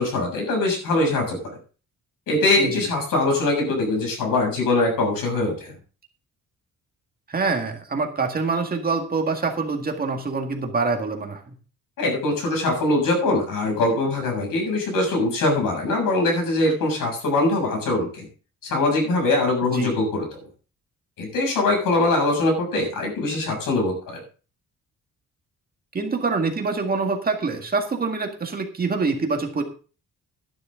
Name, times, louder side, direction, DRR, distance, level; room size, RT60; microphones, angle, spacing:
voice 1, 0.0-1.6 2.3-5.7 12.0-18.3 18.6-20.4 21.2-24.2, left 2 dB, 80° left, 2 dB, 7.0 m, -22 dB
voice 2, 7.3-11.6 19.6-19.9 25.9-29.6, right 4 dB, 30° right, 4 dB, 1.9 m, -25 dB
13.0 x 11.0 x 3.7 m, 0.37 s
wide cardioid pair, 170°, 32 cm